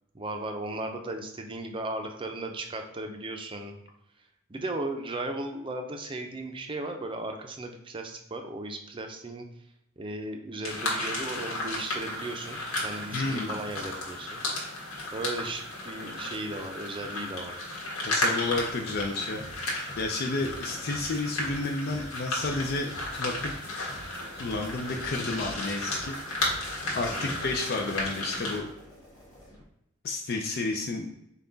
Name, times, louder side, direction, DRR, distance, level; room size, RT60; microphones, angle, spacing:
voice 1, 0.1-3.7 4.5-9.5 10.0-14.4 15.1-17.6 27.1-27.5, right 2 dB, 25° right, 4 dB, 0.5 m, -36 dB
sound 1, 10.6-28.6, left 1 dB, 75° left, 1.4 m, -34 dB
voice 2, 13.1-13.6 18.0-24.0 24.3-28.6 30.0-31.1, left 3 dB, 50° left, 2 dB, 0.5 m, -32 dB
sound 2, 18.5-29.6, equal, 20° left, 1.4 m, -47 dB
5.7 x 2.3 x 3.9 m, 0.83 s
head